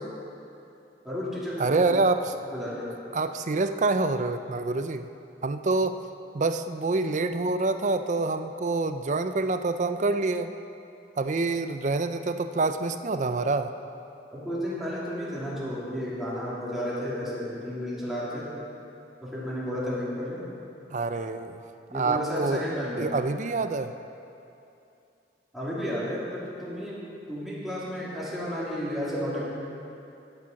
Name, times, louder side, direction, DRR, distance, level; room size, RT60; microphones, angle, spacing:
voice 1, 1.0-1.8 2.5-2.9 14.3-18.5 19.2-20.4 21.9-23.1 25.5-27.0 27.3-29.5, equal, ahead, -9 dB, 2.6 m, -32 dB
voice 2, 1.6-2.4 3.1-5.1 5.4-6.0 6.3-10.5 11.2-13.7 20.9-21.6 21.9-22.6 23.0-23.9, right 3 dB, 45° right, 9 dB, 0.5 m, -26 dB
11.0 x 9.0 x 5.8 m, 2.7 s
head